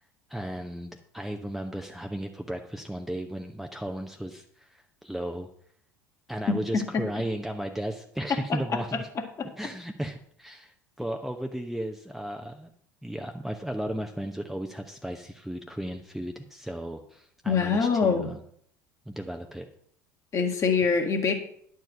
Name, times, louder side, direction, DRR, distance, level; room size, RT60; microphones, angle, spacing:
voice 1, 0.3-5.5 6.3-9.1 9.6-12.7 13.0-18.4 19.1-19.7, right 1 dB, ahead, 4 dB, 0.9 m, -35 dB
voice 2, 6.5-7.0 8.5-8.8 9.4-9.5 17.5-18.3 20.3-21.3, left 5 dB, 30° left, 3 dB, 2.0 m, -25 dB
10.5 x 4.7 x 7.5 m, 0.65 s
figure-of-eight pair, 70°, 10 cm